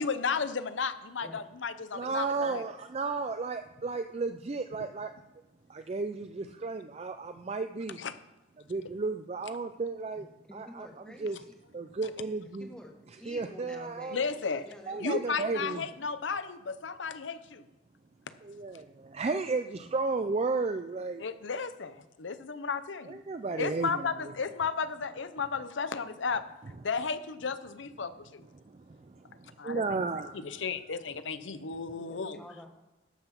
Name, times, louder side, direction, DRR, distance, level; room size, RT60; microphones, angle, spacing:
voice 1, 0.0-2.6 8.0-8.1 14.1-14.7 15.0-17.7 21.2-23.2 23.6-26.4 26.8-28.4 29.6-29.8 30.3-32.4, left 5 dB, 85° left, 13 dB, 0.7 m, -34 dB
voice 2, 1.9-5.1 5.7-8.0 8.7-10.3 10.5-10.9 11.2-11.4 11.7-12.7 13.3-14.2 14.9-15.8 18.4-21.3 23.1-24.1 28.5-30.6, right 4 dB, 35° right, 8 dB, 0.4 m, -33 dB
voice 3, 10.5-11.5 12.6-15.3 15.5-16.1 32.0-32.7, left 1 dB, 5° left, 1 dB, 1.4 m, -49 dB
13.5 x 5.8 x 5.9 m, 1.0 s
head